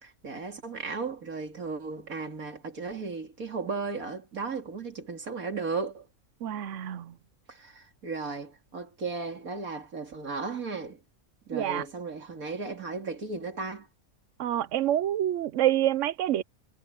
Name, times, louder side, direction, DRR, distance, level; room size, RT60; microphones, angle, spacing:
voice 1, 0.0-6.1 7.5-11.0 11.5-13.9, right 4 dB, 90° right, 3.2 m, -35 dB
voice 2, 6.4-7.1 11.5-11.8 14.4-16.4, right 12 dB, 65° right, 1.0 m, -27 dB
omnidirectional pair, 1.4 m